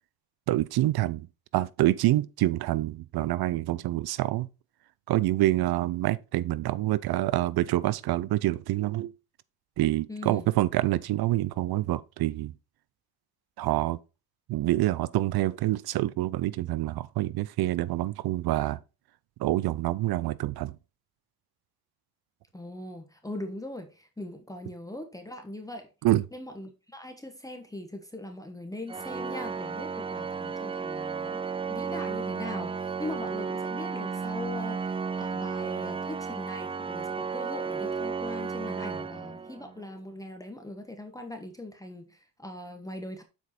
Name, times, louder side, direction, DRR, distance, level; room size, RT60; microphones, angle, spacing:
voice 1, 0.5-1.3 1.5-4.5 5.1-9.1 9.8-12.5 13.6-14.0 14.5-18.8 19.4-20.8 26.0-26.2, right 15 dB, 70° right, 0.6 m, -26 dB
voice 2, 10.1-10.5 22.5-25.9 26.3-43.2, left 1 dB, 10° left, 1.1 m, -41 dB
Organ, 28.9-39.8, right 5 dB, 15° right, 0.3 m, -33 dB
7.3 x 4.6 x 4.2 m
cardioid pair, 100°, 39 cm